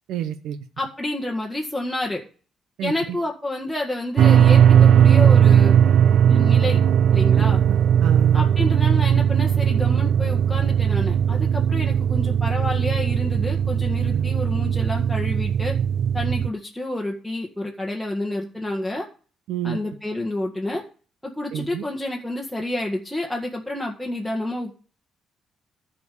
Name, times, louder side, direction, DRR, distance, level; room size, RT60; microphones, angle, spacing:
voice 1, 0.1-0.6 2.8-2.9 7.3-8.4 14.1-14.3 19.5-19.8 21.5-21.8, right 11 dB, 85° right, 11 dB, 0.8 m, -29 dB
voice 2, 0.8-2.2 2.8-5.8 6.3-6.8 7.1-7.6 8.3-15.7 16.1-19.1 19.6-20.8 21.2-24.7, left 1 dB, ahead, -1 dB, 1.7 m, -29 dB
sound 1, 4.2-16.5, right 8 dB, 65° right, 0.4 m, -18 dB
11.0 x 5.1 x 8.4 m, 0.40 s
cardioid pair, 90°, 0 cm